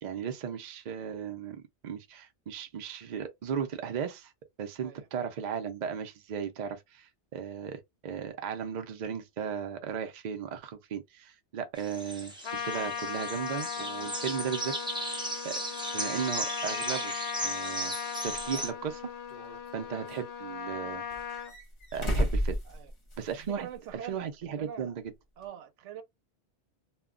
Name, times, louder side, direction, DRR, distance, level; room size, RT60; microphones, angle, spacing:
voice 1, 0.0-1.6 1.8-4.3 4.6-14.7 15.0-15.6 15.9-17.1 17.4-18.0 18.2-19.0 19.7-21.0 21.9-22.6 23.2-23.7 24.1-25.0, right 7 dB, 50° right, 0.6 m, -36 dB
sound 1, 11.7-18.7, right 1 dB, 5° right, 0.5 m, -36 dB
Trumpet, 12.4-21.5, left 7 dB, 70° left, 0.8 m, -38 dB
sound 2, 18.3-18.4 19.3-20.2 21.1-23.4 23.7-23.8 25.4-25.5, equal, 25° left, 1.0 m, -32 dB
voice 2, 23.4-25.0 25.4-26.0, right 9 dB, 85° right, 0.9 m, -44 dB
2.3 x 2.1 x 3.6 m
omnidirectional pair, 1.2 m